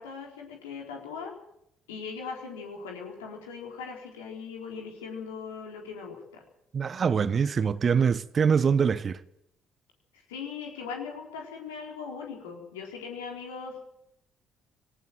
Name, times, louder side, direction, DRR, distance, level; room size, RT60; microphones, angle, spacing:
voice 1, 0.0-1.3 1.9-6.4 10.3-13.9, left 5 dB, 75° left, 4.1 m, -39 dB
voice 2, 6.7-9.2, right 6 dB, 40° right, 1.0 m, -24 dB
18.5 x 18.0 x 7.9 m
figure-of-eight pair, 50°, 0 cm